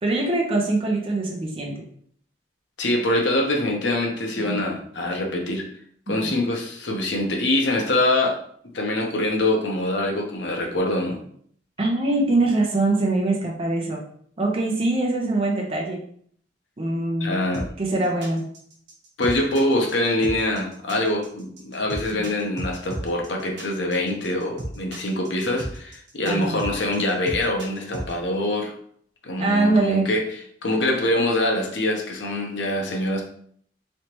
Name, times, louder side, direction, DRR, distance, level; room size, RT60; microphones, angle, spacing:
voice 1, 0.0-1.8 4.4-4.6 6.2-6.3 11.8-14.0 14.4-16.0 16.8-17.4 17.8-18.4 22.1-22.2 26.2-26.6 29.4-30.1, right 2 dB, 30° right, -2 dB, 0.7 m, -23 dB
voice 2, 2.8-5.6 6.1-8.4 8.7-11.2 17.2-17.7 18.0-18.1 19.2-28.7 29.2-30.2 30.6-33.2, left 1 dB, 90° left, 1 dB, 0.7 m, -24 dB
sound 1, 17.5-28.1, right 1 dB, 85° right, 0.9 m, -34 dB
3.2 x 2.9 x 3.0 m, 0.62 s
head